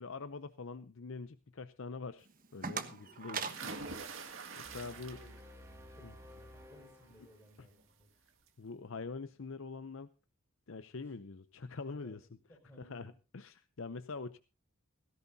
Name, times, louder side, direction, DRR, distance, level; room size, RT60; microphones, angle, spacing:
voice 1, 0.0-2.3 2.5-3.4 4.5-5.2 6.0-6.1 8.6-10.1 10.7-12.3 12.8-14.4, left 4 dB, 65° left, 12 dB, 0.6 m, -44 dB
sound 1, 2.2-5.0, right 5 dB, 40° right, 1.2 m, -43 dB
voice 2, 3.4-4.1 4.4-8.1 11.0-11.1 11.9-12.2 12.5-13.1, equal, 10° left, 1 dB, 5.1 m, -61 dB
sound 2, 3.5-5.6 6.0-6.4 7.8-7.9 8.3-8.4, right 4 dB, 65° right, 2.0 m, -45 dB
sound 3, 4.6-7.8, left 1 dB, 15° right, 2.1 m, -55 dB
17.5 x 16.0 x 2.7 m, 0.31 s
head